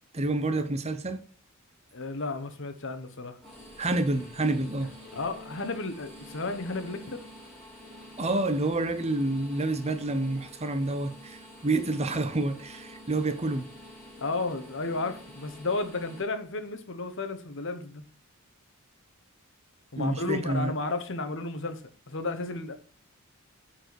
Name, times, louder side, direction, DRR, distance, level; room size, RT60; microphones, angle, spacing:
voice 1, 0.1-1.2 3.8-4.9 8.2-13.7 20.0-20.7, right 2 dB, 30° right, 0.8 m, -28 dB
voice 2, 1.9-3.4 5.1-7.2 14.2-18.0 19.9-21.8 22.1-22.7, left 3 dB, 60° left, 1.1 m, -33 dB
sound 1, 3.4-16.2, equal, 5° left, 4.5 m, -48 dB
9.4 x 4.6 x 4.7 m
head